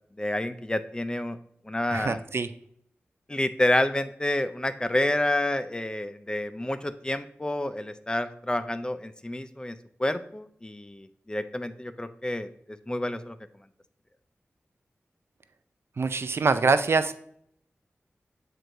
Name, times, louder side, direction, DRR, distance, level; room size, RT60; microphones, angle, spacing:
voice 1, 0.2-1.4 1.7-2.2 3.3-9.7 10.0-12.5 12.9-13.4, left 1 dB, 20° left, 11 dB, 0.4 m, -29 dB
voice 2, 1.9-2.5 16.0-17.2, right 4 dB, 60° right, 12 dB, 0.4 m, -24 dB
8.0 x 4.5 x 2.6 m, 0.67 s
cardioid pair, 55°, 5 cm